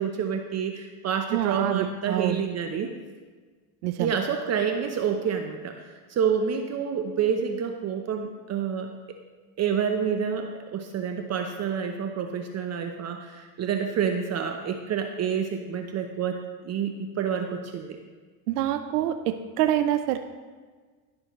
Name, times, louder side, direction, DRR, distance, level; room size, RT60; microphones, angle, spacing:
voice 1, 0.0-2.9 4.0-8.9 9.6-16.4 16.6-18.0, right 7 dB, 35° right, 5 dB, 0.8 m, -28 dB
voice 2, 1.3-2.4 3.8-4.1 18.5-20.2, right 12 dB, 85° right, 9 dB, 0.6 m, -26 dB
16.5 x 6.2 x 3.1 m, 1.4 s
supercardioid pair, 100°, 45 cm